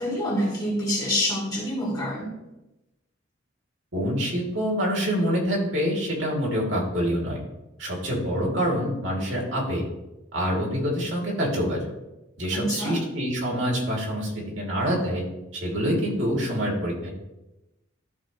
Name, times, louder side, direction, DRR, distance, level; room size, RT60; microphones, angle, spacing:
voice 1, 0.0-2.3 12.5-13.0, equal, 20° left, -5 dB, 2.7 m, -26 dB
voice 2, 3.9-7.4 7.8-9.9 10.3-11.8 12.4-15.2 15.5-17.1, equal, 75° right, -3 dB, 2.6 m, -26 dB
13.0 x 4.6 x 3.2 m, 0.97 s
head